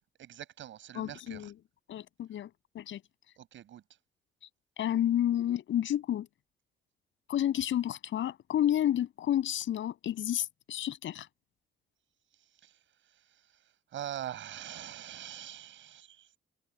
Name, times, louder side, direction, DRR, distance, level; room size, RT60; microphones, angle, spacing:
voice 1, 0.2-1.5 3.4-3.8 12.6-12.7 13.9-16.3, right 11 dB, 75° right, 7.4 m, -43 dB
voice 2, 0.9-1.5 1.9-3.0 4.8-6.3 7.3-11.3, left 11 dB, 75° left, 8.0 m, -30 dB
cardioid pair, 90°, 20 cm